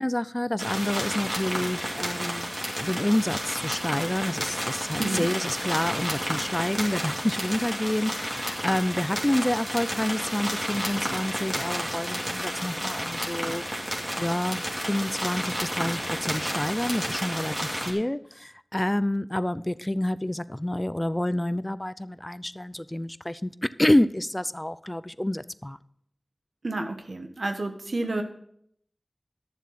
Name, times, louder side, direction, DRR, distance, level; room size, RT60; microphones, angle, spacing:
voice 1, 0.0-13.6 14.2-25.8, left 1 dB, 20° left, 0.5 m, -28 dB
sound 1, 0.6-17.9, equal, 20° right, 2.7 m, -31 dB
voice 2, 26.6-28.2, right 2 dB, 80° right, 1.3 m, -30 dB
11.5 x 7.3 x 5.8 m
wide cardioid pair, 40°, 0 cm